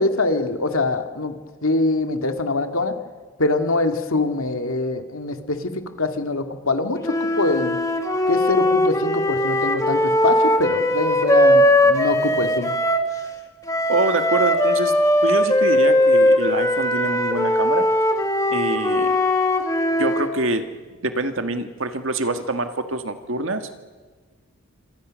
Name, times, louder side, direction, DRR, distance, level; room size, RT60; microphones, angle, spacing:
voice 1, 0.0-1.4 1.6-2.9 3.4-7.8 8.3-12.7, left 2 dB, 85° left, 6 dB, 2.1 m, -24 dB
sound 1, 7.0-13.1 13.7-20.3, left 1 dB, 15° left, 1.9 m, -19 dB
voice 2, 13.9-17.9 18.5-19.2 20.0-20.6 21.0-23.7, right 2 dB, 70° right, 7 dB, 1.8 m, -25 dB
28.0 x 26.0 x 6.4 m, 1.4 s
head